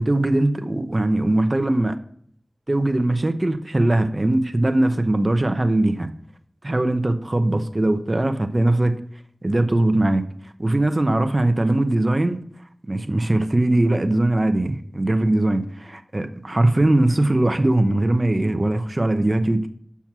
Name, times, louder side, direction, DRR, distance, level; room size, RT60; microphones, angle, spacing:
voice 1, 0.0-2.0 2.7-6.1 6.6-9.0 9.4-10.3 10.6-12.4 12.9-19.7, right 1 dB, 35° right, 8 dB, 0.8 m, -20 dB
7.1 x 6.1 x 5.9 m, 0.63 s
wide cardioid pair, 65°, 0 cm